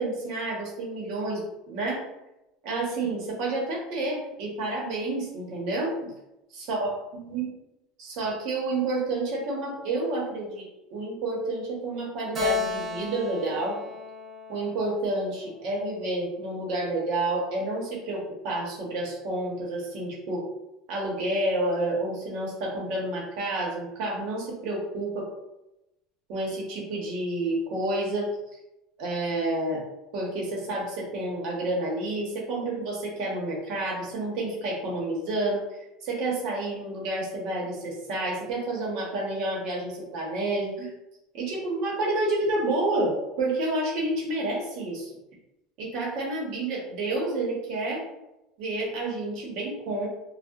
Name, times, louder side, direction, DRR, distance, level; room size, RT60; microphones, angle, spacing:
voice 1, 0.0-2.0 2.6-6.1 6.5-6.9 7.2-7.5 8.0-10.7 10.9-13.8 14.5-20.4 20.9-25.3 26.3-28.3 29.0-29.8 30.1-35.6 36.0-40.9 41.3-45.1 45.8-48.0 48.6-50.1, right 2 dB, 50° right, -3 dB, 0.8 m, -29 dB
Keyboard (musical), 12.3-15.8, left 4 dB, 20° right, 0.5 m, -33 dB
2.6 x 2.0 x 2.2 m, 0.93 s
cardioid pair, 170°, 0 cm